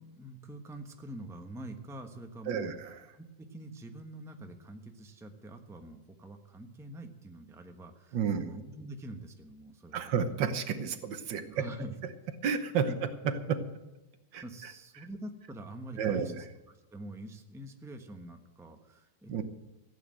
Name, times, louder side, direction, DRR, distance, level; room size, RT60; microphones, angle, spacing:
voice 1, 0.0-2.7 3.1-10.1 11.5-11.9 12.9-13.0 14.4-16.5 16.9-19.4, right 1 dB, ahead, 5 dB, 0.9 m, -45 dB
voice 2, 2.5-3.0 8.1-8.5 9.9-11.7 12.4-13.6 14.3-14.7 15.0-15.1 16.0-16.4 19.3-19.4, right 6 dB, 80° right, 9 dB, 1.8 m, -31 dB
15.5 x 8.6 x 7.7 m, 1.1 s
omnidirectional pair, 2.0 m